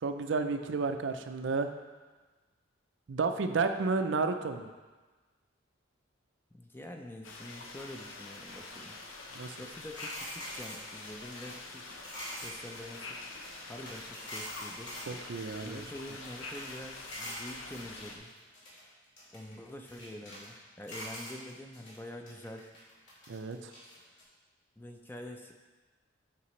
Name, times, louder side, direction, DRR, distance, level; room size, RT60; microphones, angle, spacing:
voice 1, 0.0-1.7 3.1-4.7 9.3-9.6 15.1-15.8 23.3-23.7, right 4 dB, 65° right, 7 dB, 0.5 m, -31 dB
voice 2, 6.5-9.0 9.6-12.0 12.4-13.4 13.7-14.9 15.6-18.3 19.3-22.7 24.8-25.5, left 1 dB, 10° left, 3 dB, 0.4 m, -46 dB
sound 1, 7.2-18.2, left 3 dB, 80° left, 0.8 m, -46 dB
sound 2, 10.0-15.1 15.4-16.8 17.0-18.8 19.2-20.5 20.9-22.0 22.3-24.2, left 1 dB, 60° left, 2.3 m, -45 dB
8.4 x 6.0 x 3.1 m, 1.3 s
head